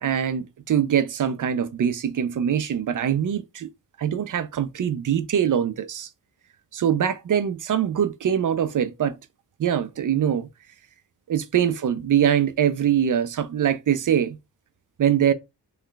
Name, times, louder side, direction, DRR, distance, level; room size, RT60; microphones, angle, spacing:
voice 1, 0.0-3.7 4.0-6.1 6.7-9.2 9.6-10.5 11.3-14.4 15.0-15.3, right 9 dB, 50° right, 0.5 m, -23 dB
3.2 x 2.2 x 3.8 m
wide cardioid pair, 105°, 43 cm